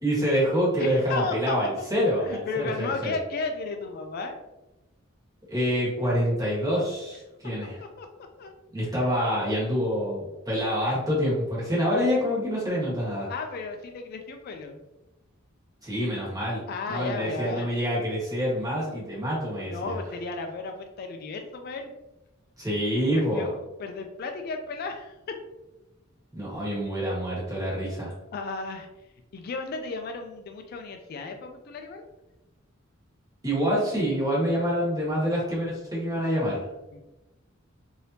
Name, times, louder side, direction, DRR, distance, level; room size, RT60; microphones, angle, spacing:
voice 1, 0.0-3.1 5.5-7.8 8.7-13.3 15.8-16.6 16.9-19.9 22.6-23.5 26.3-28.1 33.4-36.7, equal, 20° right, -7 dB, 1.4 m, -26 dB
voice 2, 0.8-1.7 2.2-4.4 7.8-8.1 8.4-8.5 8.8-9.1 13.3-14.8 16.7-17.7 18.9-19.0 19.6-21.9 23.1-25.4 28.3-28.9 29.3-32.0 36.9-37.0, left 3 dB, 50° left, 5 dB, 0.3 m, -34 dB
3.3 x 2.7 x 2.7 m, 1.0 s
head